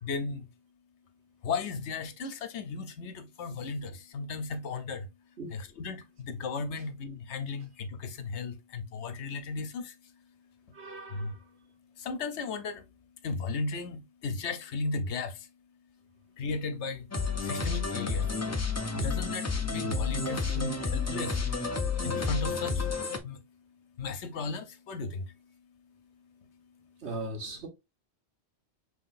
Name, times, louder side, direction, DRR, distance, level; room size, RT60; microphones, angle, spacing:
voice 1, 0.0-0.5 1.4-5.1 5.5-10.1 11.1-11.4 12.0-12.8 13.2-15.5 16.4-17.1 17.4-18.4 18.9-21.5 22.0-22.9 23.2-23.5 24.0-25.4 26.2-26.6, left 4 dB, 80° left, 1.1 m, -35 dB
voice 2, 10.7-11.3 27.0-27.7, right 2 dB, 70° right, 1.5 m, -38 dB
sound 1, 17.1-23.2, left 4 dB, 20° left, 0.4 m, -31 dB
5.8 x 3.2 x 2.5 m
omnidirectional pair, 1.2 m